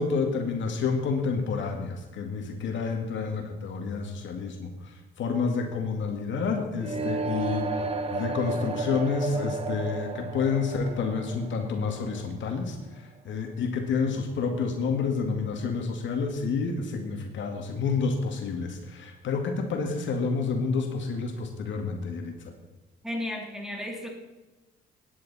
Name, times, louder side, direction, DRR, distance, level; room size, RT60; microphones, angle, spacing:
voice 1, 0.0-4.7 5.2-7.7 8.1-12.8 13.3-22.3, left 4 dB, 70° left, 4 dB, 2.1 m, -29 dB
sound 1, 6.8-12.7, right 3 dB, 30° right, 1.2 m, -33 dB
voice 2, 23.0-24.1, left 1 dB, ahead, 0 dB, 3.1 m, -33 dB
17.5 x 9.8 x 4.2 m, 1.1 s
cardioid pair, 90°, 20 cm